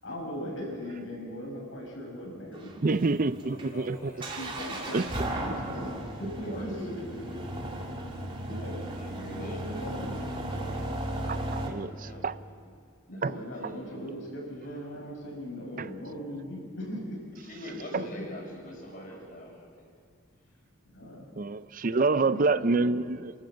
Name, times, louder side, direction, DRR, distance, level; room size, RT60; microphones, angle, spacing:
voice 1, 0.0-2.7 4.3-5.9 6.2-7.1 8.5-8.8 9.3-10.2 13.1-17.2 17.9-18.0 20.8-21.3 22.1-23.0, equal, 75° left, -2 dB, 6.8 m, -39 dB
sound 1, 2.5-11.7, right 1 dB, 25° right, 2.4 m, -36 dB
voice 2, 2.8-4.4 4.9-5.1 8.5-8.6 11.2-12.3 13.2-13.4 15.8-15.9 21.4-23.3, right 3 dB, 45° right, 15 dB, 0.5 m, -27 dB
voice 3, 3.4-4.2 5.2-5.7 6.4-6.7 8.9-9.6 11.3-12.3 13.1-14.0 17.4-19.8, equal, 45° left, -1 dB, 6.1 m, -44 dB
28.5 x 13.0 x 7.7 m, 2.1 s
head